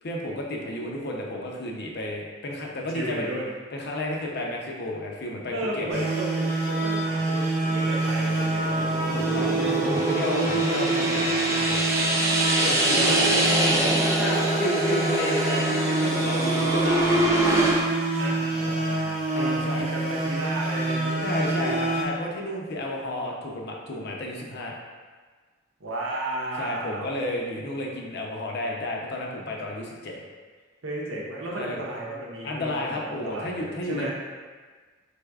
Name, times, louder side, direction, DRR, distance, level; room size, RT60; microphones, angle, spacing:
voice 1, 0.0-3.3 3.7-6.0 9.1-11.8 12.6-13.2 13.5-17.4 18.6-19.1 19.3-19.9 21.2-24.8 26.6-30.2 31.6-31.8 32.4-34.1, left 1 dB, 55° left, -1 dB, 0.5 m, -32 dB
voice 2, 2.9-3.5 5.5-9.7 12.9-13.4 18.2-21.8 25.8-27.2 29.4-29.6 30.8-34.1, right 1 dB, 90° right, -4 dB, 0.9 m, -34 dB
sound 1, 5.9-22.0, right 2 dB, 35° right, 0.7 m, -27 dB
sound 2, 7.7-17.8, right 1 dB, 15° right, 0.3 m, -25 dB
4.2 x 3.3 x 2.3 m, 1.5 s
head